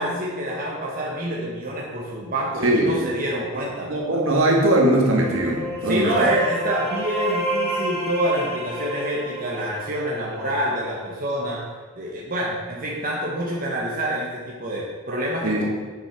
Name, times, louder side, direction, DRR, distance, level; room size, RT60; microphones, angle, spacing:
voice 1, 0.0-3.9 5.8-11.6 11.9-15.7, right 1 dB, 40° right, -4 dB, 1.5 m, -27 dB
voice 2, 2.6-3.1 3.9-6.3 15.4-15.6, right 1 dB, 65° right, -1 dB, 2.1 m, -20 dB
sound 1, 4.9-10.6, right 1 dB, 45° left, 3.4 m, -29 dB
8.9 x 6.9 x 6.0 m, 1.4 s
head